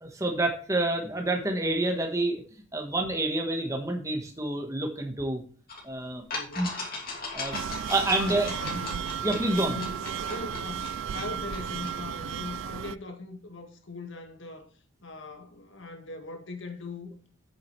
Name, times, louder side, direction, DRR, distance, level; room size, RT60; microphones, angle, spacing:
voice 1, 0.0-5.4 5.8-6.2 6.6-6.7 7.3-7.6 7.9-8.5 9.2-9.7, right 2 dB, 15° right, 1.3 m, -28 dB
sound 1, 5.7-5.8 6.3-12.0, left 3 dB, 45° left, 2.7 m, -39 dB
voice 2, 6.3-6.8 8.1-9.0 9.6-9.9 10.3-14.7 15.0-17.1, left 3 dB, 65° left, 1.8 m, -40 dB
sound 2, 7.5-13.0, right 8 dB, 70° right, 0.3 m, -34 dB
8.4 x 7.5 x 3.2 m
head